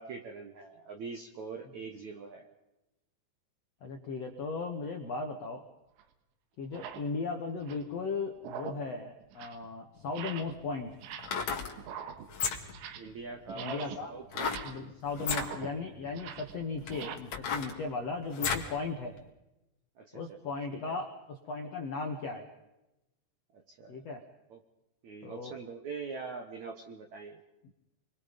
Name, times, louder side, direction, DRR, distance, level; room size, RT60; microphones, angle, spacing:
voice 1, 0.0-2.5 13.0-14.6 15.3-15.4 20.0-21.0 23.5-24.0 24.5-24.6 25.0-27.4, right 4 dB, 60° right, 4 dB, 1.9 m, -43 dB
voice 2, 3.8-5.6 6.6-10.9 13.5-14.1 14.6-19.1 20.1-22.5 23.9-24.2 25.2-25.6, left 4 dB, 65° left, 3 dB, 1.6 m, -37 dB
sound 1, 5.1-5.3 6.0-6.1 6.6-7.1 7.5-8.0 8.4-8.9 9.2-9.7 10.1-10.6 10.9-11.5 11.8-13.2 13.5-17.2, right 8 dB, 85° right, 3.7 m, -44 dB
sound 2, 10.0-10.1 11.1-11.7 12.3-12.8 14.3-14.7 15.2-15.5 16.2-16.3 16.8-18.7 19.2-19.3, left 6 dB, 45° left, 2.6 m, -33 dB
27.5 x 22.5 x 5.2 m, 0.95 s
omnidirectional pair, 5.2 m